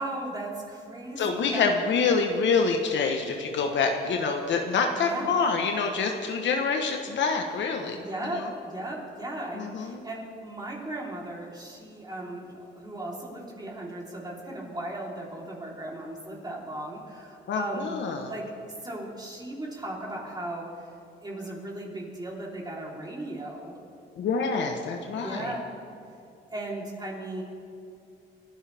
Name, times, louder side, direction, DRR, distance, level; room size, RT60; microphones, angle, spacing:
voice 1, 0.0-1.7 4.9-5.4 8.0-18.0 18.2-21.0 21.2-23.8 25.2-25.7 26.5-27.4, right 1 dB, 20° right, -3 dB, 3.6 m, -36 dB
voice 2, 1.2-8.0 8.4-8.5 9.6-10.0 17.5-18.3 24.2-25.5, left 5 dB, 65° left, 3 dB, 1.2 m, -26 dB
29.0 x 11.0 x 3.5 m, 2.6 s
cardioid pair, 90°, 20 cm